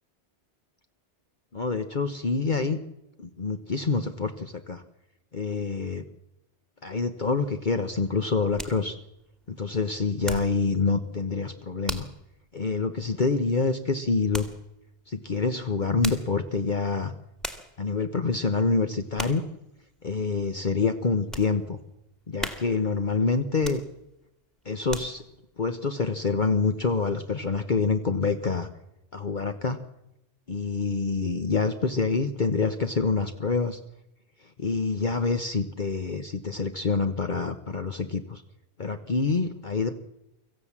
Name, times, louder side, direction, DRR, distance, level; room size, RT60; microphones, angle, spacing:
voice 1, 1.5-2.8 3.2-4.8 5.3-6.1 6.8-9.0 9.5-12.1 12.5-14.5 15.1-17.1 17.8-19.4 20.0-21.8 22.3-23.8 24.6-25.2 25.6-28.7 29.1-29.8 30.5-33.8 34.6-38.4 38.8-40.0, left 4 dB, 45° left, 7 dB, 1.2 m, -26 dB
sound 1, 8.0-10.7 11.0-11.3 11.9-12.2 12.7-12.8 14.3-14.6 15.8-16.4 17.0-17.1 17.4-17.8 18.3-18.6 19.2-19.5 20.0-20.1 20.7-21.5 22.0-22.1 22.4-23.0 23.5-24.2 24.6-25.4 25.9-26.0, equal, ahead, 2.0 m, -37 dB
25.5 x 15.0 x 7.4 m, 0.87 s
omnidirectional pair, 1.2 m